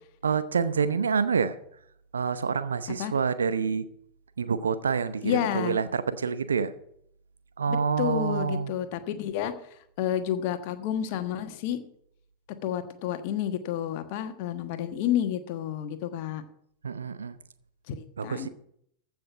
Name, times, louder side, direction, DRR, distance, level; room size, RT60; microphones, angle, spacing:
voice 1, 0.2-1.6 2.1-3.9 4.4-6.7 7.6-8.7 16.8-17.4 18.2-18.5, right 6 dB, 70° right, 13 dB, 0.8 m, -27 dB
voice 2, 5.2-5.8 7.7-9.5 10.0-11.8 12.6-16.4 17.9-18.5, left 10 dB, 45° left, 9 dB, 1.3 m, -30 dB
15.0 x 6.1 x 7.1 m, 0.70 s
figure-of-eight pair, 90°, 0 cm